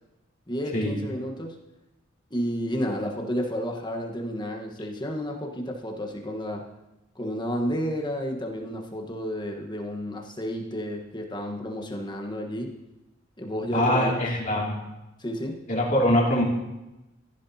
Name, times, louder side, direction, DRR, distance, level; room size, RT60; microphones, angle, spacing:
voice 1, 0.5-1.6 2.3-6.7 7.1-12.8 13.4-14.2 15.2-15.6, equal, 20° left, 2 dB, 1.2 m, -31 dB
voice 2, 13.7-14.8 15.7-16.4, left 1 dB, 40° left, -3 dB, 2.6 m, -23 dB
14.5 x 11.5 x 2.8 m, 0.98 s
head